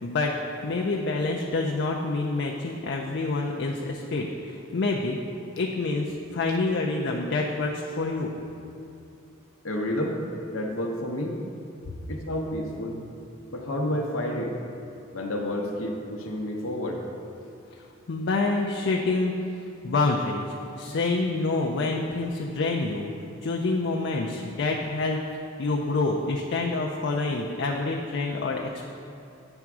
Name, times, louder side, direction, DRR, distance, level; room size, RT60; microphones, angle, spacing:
voice 1, 0.0-5.2 5.6-8.3 18.1-20.4 20.8-23.1 23.4-25.2 25.6-28.8, left 3 dB, 60° left, 0 dB, 0.5 m, -27 dB
voice 2, 9.6-10.2 10.5-11.4 12.1-13.0 13.5-14.5 15.1-17.0, left 1 dB, 80° left, 0 dB, 0.8 m, -30 dB
8.9 x 3.5 x 6.0 m, 2.7 s
head